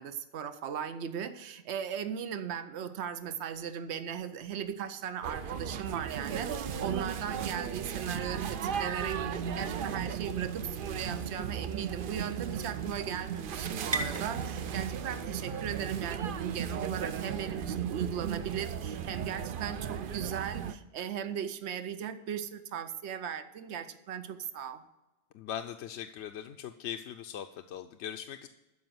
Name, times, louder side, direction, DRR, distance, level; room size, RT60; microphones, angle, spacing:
voice 1, 0.0-24.8, right 8 dB, 75° right, 10 dB, 1.0 m, -38 dB
sound 1, 5.2-20.7, right 7 dB, 60° right, 0.7 m, -35 dB
sound 2, 10.3-18.2, right 2 dB, 25° right, 0.7 m, -44 dB
voice 2, 25.3-28.5, left 9 dB, 80° left, 6 dB, 0.9 m, -40 dB
12.5 x 5.0 x 7.8 m, 1.0 s
omnidirectional pair, 1.1 m